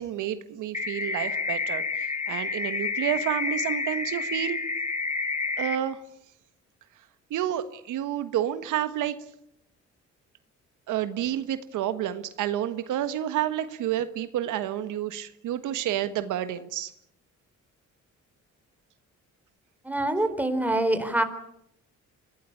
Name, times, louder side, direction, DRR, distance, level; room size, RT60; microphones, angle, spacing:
voice 1, 0.0-4.6 5.6-6.0 7.3-9.2 10.9-16.9, right 11 dB, 85° right, 11 dB, 1.5 m, -30 dB
sound 1, 0.7-5.8, left 4 dB, 25° left, 2.6 m, -29 dB
voice 2, 19.8-21.2, right 1 dB, 5° right, 8 dB, 4.0 m, -25 dB
26.0 x 17.0 x 9.8 m, 0.75 s
cardioid pair, 90°, 30 cm